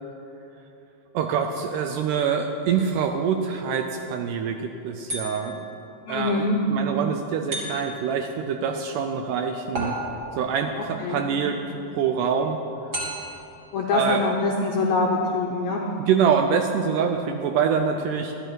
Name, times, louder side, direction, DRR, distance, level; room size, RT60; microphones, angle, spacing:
voice 1, 1.1-5.6 6.1-10.0 10.3-12.6 13.9-14.2 16.0-18.3, right 7 dB, 80° right, 5 dB, 1.9 m, -25 dB
sound 1, 5.1-5.7 7.5-8.1 9.7-10.5 12.9-13.5, right 1 dB, 30° right, 2.5 m, -32 dB
voice 2, 6.1-6.6 11.0-11.2 13.7-15.8, left 3 dB, 75° left, -1 dB, 1.7 m, -24 dB
12.5 x 12.5 x 4.5 m, 3.0 s
omnidirectional pair, 4.1 m